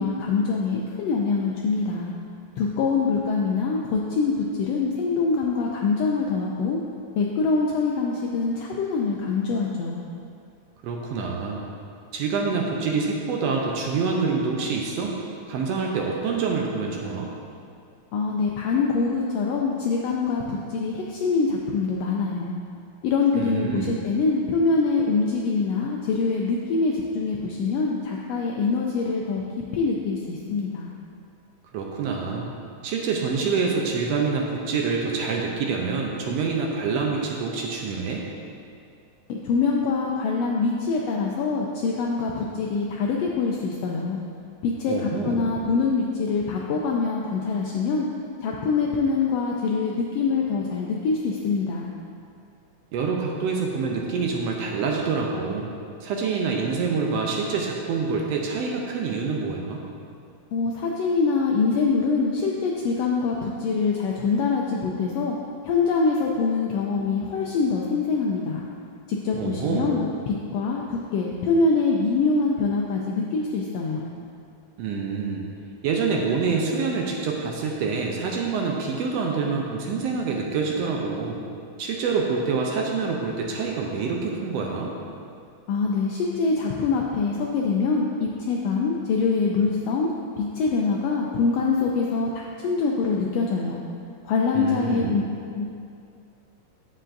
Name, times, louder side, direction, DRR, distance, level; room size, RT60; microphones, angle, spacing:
voice 1, 0.0-2.1 2.6-6.8 7.2-10.0 18.1-22.5 23.0-29.4 29.7-30.9 39.3-44.2 44.6-48.1 48.4-51.9 60.5-65.3 65.6-68.7 69.1-74.1 85.7-90.1 90.4-93.8 94.2-95.2 95.5-95.7, left 4 dB, 80° left, -1 dB, 1.5 m, -24 dB
voice 2, 10.8-11.6 12.1-15.2 15.5-17.3 23.3-23.9 31.7-32.5 32.8-38.2 44.9-45.5 52.9-55.7 56.0-59.8 69.4-70.0 74.8-75.4 75.8-81.4 81.8-84.9 94.5-95.2, right 4 dB, 75° right, 0 dB, 1.6 m, -26 dB
9.1 x 7.3 x 2.6 m, 2.5 s
omnidirectional pair, 3.3 m